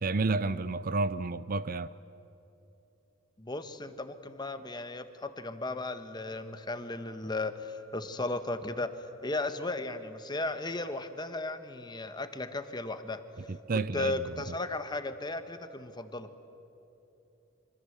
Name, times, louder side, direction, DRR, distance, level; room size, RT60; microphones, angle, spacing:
voice 1, 0.0-1.9 13.7-14.1, right 3 dB, 45° right, 0.6 m, -30 dB
voice 2, 3.4-8.9 9.2-13.2 13.7-16.3, left 2 dB, 20° left, 1.3 m, -35 dB
27.0 x 25.5 x 8.1 m
head